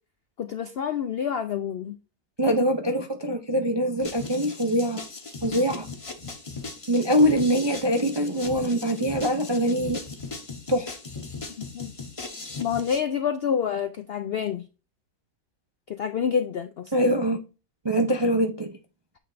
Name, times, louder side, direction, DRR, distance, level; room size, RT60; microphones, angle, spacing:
voice 1, 0.4-2.0 11.6-11.9 12.6-14.7 15.9-16.9, left 7 dB, 70° left, 0.5 m, -28 dB
voice 2, 2.4-5.0 5.4-5.9 6.9-10.0 10.7-11.0 16.9-17.4 17.8-18.7, equal, 40° right, 0.3 m, -23 dB
sound 1, 4.0-13.0, left 3 dB, 30° left, 0.8 m, -38 dB
8.4 x 3.3 x 3.9 m
omnidirectional pair, 1.6 m